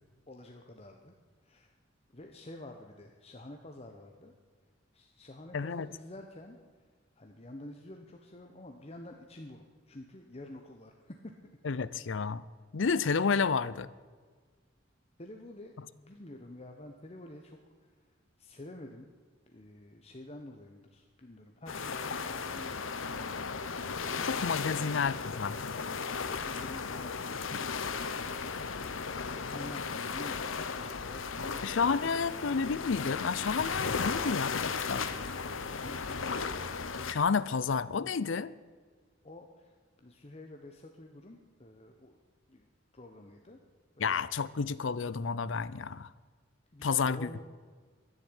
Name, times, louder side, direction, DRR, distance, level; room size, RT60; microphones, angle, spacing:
voice 1, 0.3-1.1 1.4-1.7 2.1-4.3 4.9-6.9 7.2-11.6 15.2-17.9 18.4-19.1 19.5-23.5 24.1-24.9 26.1-32.2 35.6-36.5 39.2-39.7 40.0-42.2 42.5-42.7 42.9-43.6 44.0-44.2 46.7-47.4, left 1 dB, 30° left, 3 dB, 1.0 m, -49 dB
voice 2, 5.5-5.9 11.6-12.4 12.7-13.9 24.2-25.7 31.6-35.1 37.1-38.5 44.0-46.1 46.8-47.3, left 5 dB, 70° left, 18 dB, 0.6 m, -30 dB
sound 1, 21.7-37.1, left 5 dB, 90° left, 0.9 m, -35 dB
12.0 x 10.5 x 9.8 m, 1.5 s
head